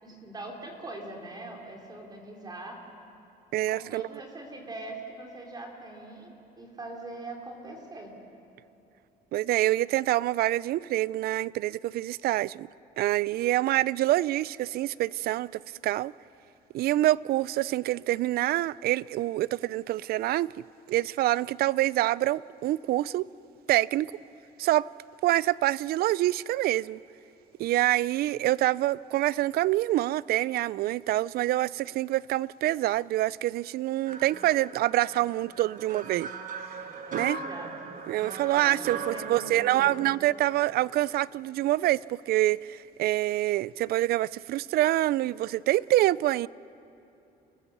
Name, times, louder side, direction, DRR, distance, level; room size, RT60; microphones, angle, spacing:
voice 1, 0.0-2.8 3.7-8.1 37.1-37.7 38.5-40.1, right 2 dB, 25° right, 3.8 m, -42 dB
voice 2, 3.5-4.1 9.3-12.7 13.0-16.1 16.7-20.5 20.9-23.2 23.7-24.1 24.6-24.9 25.2-27.0 27.6-36.3 37.1-37.4 38.1-46.5, right 15 dB, 65° right, 0.4 m, -26 dB
sound 1, 34.1-41.2, right 5 dB, 50° right, 1.6 m, -40 dB
29.5 x 15.0 x 7.0 m
cardioid pair, 110°, 17 cm